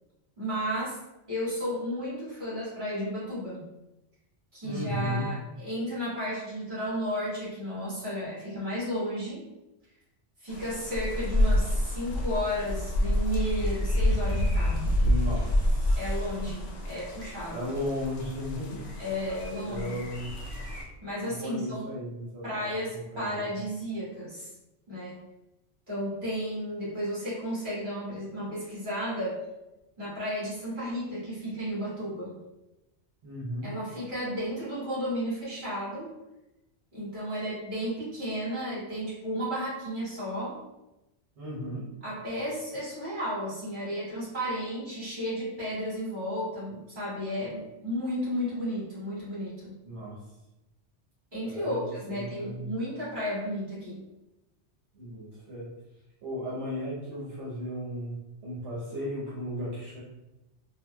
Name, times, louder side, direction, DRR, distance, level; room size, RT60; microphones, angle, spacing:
voice 1, 0.4-1.0 1.3-3.7 4.5-9.4 10.4-15.0 16.0-17.7 19.0-19.9 21.0-21.9 22.4-24.5 24.9-25.2 25.9-29.4 30.0-32.4 33.6-36.1 36.9-40.6 42.0-49.8 51.3-54.0, equal, 45° right, -9 dB, 1.8 m, -33 dB
voice 2, 4.6-5.3 15.0-16.0 17.5-18.8 19.7-20.3 21.2-23.4 33.2-33.7 41.4-41.9 49.8-50.2 51.4-51.8 52.1-52.7 54.9-55.7 56.2-58.2 58.4-60.0, left 1 dB, 70° right, -9 dB, 1.2 m, -35 dB
sound 1, 10.5-20.8, left 1 dB, 65° left, 0.9 m, -28 dB
3.8 x 2.5 x 2.2 m, 0.95 s
omnidirectional pair, 1.2 m